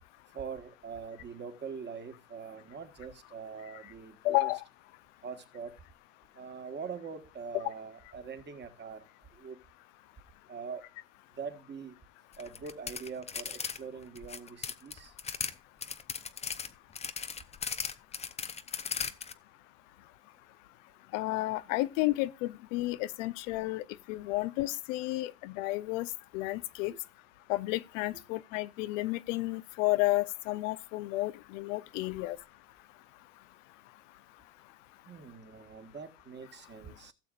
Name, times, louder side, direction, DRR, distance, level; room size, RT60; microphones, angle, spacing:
voice 1, 0.3-4.5 5.2-5.7 6.4-9.0 9.4-9.6 10.5-10.8 11.4-12.0 12.4-15.1 26.9-27.0 35.1-37.1, right 6 dB, 25° right, 1.6 m, -43 dB
voice 2, 4.2-4.6 21.1-23.8 24.1-26.1 26.3-26.9 27.5-32.4, left 19 dB, 70° left, 0.8 m, -31 dB
sound 1, 12.3-13.8 14.0-15.5 15.8-19.3, left 6 dB, 15° left, 0.7 m, -37 dB
16.5 x 7.0 x 2.5 m
supercardioid pair, 120°, 39 cm